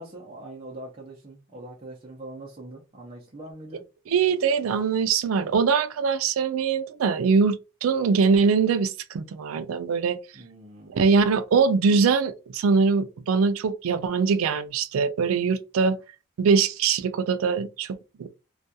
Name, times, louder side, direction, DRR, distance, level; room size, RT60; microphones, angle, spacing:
voice 1, 0.0-3.8 10.3-11.0, right 1 dB, 30° right, 0.5 m, -42 dB
voice 2, 4.1-10.2 10.9-16.0 16.4-18.3, right 5 dB, 90° right, 0.4 m, -22 dB
2.3 x 2.2 x 2.7 m
head